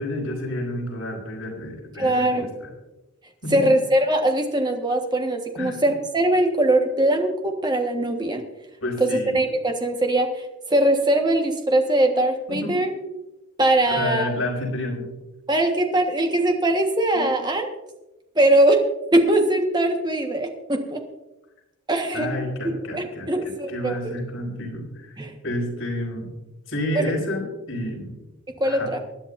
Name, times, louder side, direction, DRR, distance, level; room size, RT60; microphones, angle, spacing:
voice 1, 0.0-2.7 3.4-3.7 5.6-5.8 8.8-9.4 12.5-12.7 13.9-15.0 17.1-17.3 22.1-25.2 25.4-26.3 26.7-28.2 28.6-28.9, left 1 dB, 70° left, -1 dB, 5.2 m, -30 dB
voice 2, 2.0-2.5 3.5-8.4 9.0-10.3 10.7-12.9 13.6-14.3 15.5-17.7 18.3-18.8 19.1-21.0 21.9-22.3 22.6-24.0 25.2-25.3 26.9-27.1 28.6-29.0, right 1 dB, 20° right, 3 dB, 1.4 m, -21 dB
24.5 x 10.5 x 2.6 m, 1.0 s
head